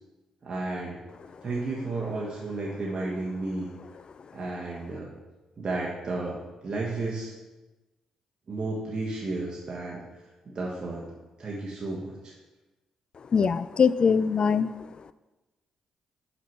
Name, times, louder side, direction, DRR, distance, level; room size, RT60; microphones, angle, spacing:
voice 1, 0.4-1.0 1.4-3.7 4.3-5.1 5.6-7.3 8.5-10.0 10.4-11.1 11.4-12.3, right 2 dB, 45° right, -4 dB, 1.4 m, -32 dB
voice 2, 13.3-14.9, left 6 dB, 50° left, 15 dB, 0.4 m, -23 dB
5.9 x 5.6 x 4.6 m, 1.1 s
supercardioid pair, 55°, 2 cm